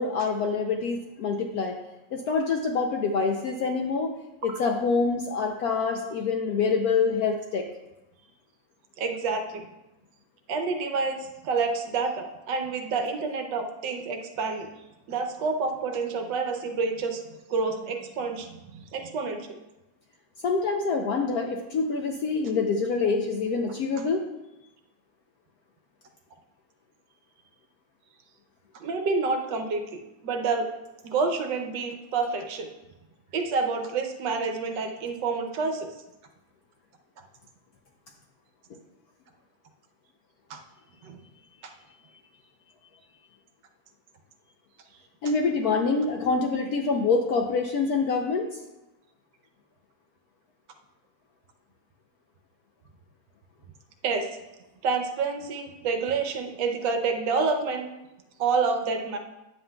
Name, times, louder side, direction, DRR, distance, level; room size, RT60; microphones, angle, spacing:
voice 1, 0.0-1.8 2.1-4.2 4.4-7.7 20.4-24.2 45.2-48.5, left 4 dB, 75° left, 2 dB, 0.9 m, -26 dB
voice 2, 9.0-9.7 10.5-14.7 15.1-17.2 17.5-19.6 28.7-30.7 31.0-32.7 33.3-35.9 40.5-40.6 41.0-41.2 41.6-41.7 54.0-54.3 54.8-57.9 58.4-59.2, right 4 dB, 70° right, 5 dB, 1.3 m, -28 dB
9.4 x 7.6 x 2.2 m, 0.97 s
omnidirectional pair, 2.1 m